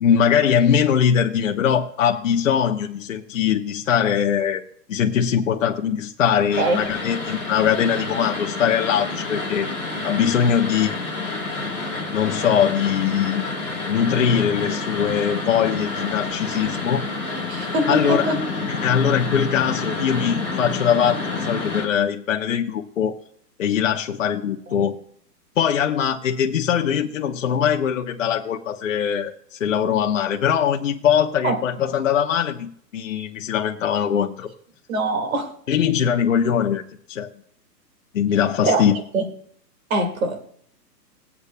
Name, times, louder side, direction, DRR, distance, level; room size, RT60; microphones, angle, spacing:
voice 1, 0.0-4.6 4.9-9.7 10.0-11.0 12.1-13.4 13.9-17.0 17.9-18.3 18.7-23.1 23.6-25.0 25.6-34.5 35.7-36.8 37.1-37.3 38.1-38.9, left 8 dB, 50° left, 0.9 m, -21 dB
sound 1, 6.5-21.8, left 3 dB, 10° right, 2.0 m, -29 dB
voice 2, 17.5-18.4 24.7-24.8 31.4-31.6 34.9-35.5 38.6-38.9 39.1-39.2 39.9-40.4, right 2 dB, 55° right, 2.2 m, -22 dB
19.0 x 8.4 x 2.2 m
hypercardioid pair, 180°, 49 cm